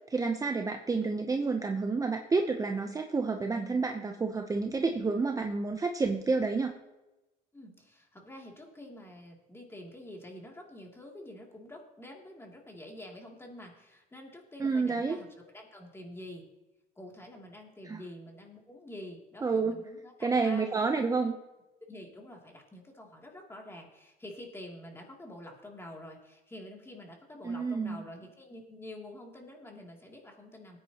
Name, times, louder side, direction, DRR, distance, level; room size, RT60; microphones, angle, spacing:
voice 1, 0.1-6.7 14.6-15.2 17.8-18.0 19.4-19.8 20.2-21.3 27.4-28.0, right 4 dB, 20° right, 4 dB, 0.8 m, -29 dB
voice 2, 7.5-15.3 15.5-16.5 17.0-20.8 21.9-30.8, left 1 dB, 15° left, 0 dB, 2.8 m, -47 dB
18.5 x 9.4 x 3.0 m, 1.0 s
cardioid pair, 110°, 17 cm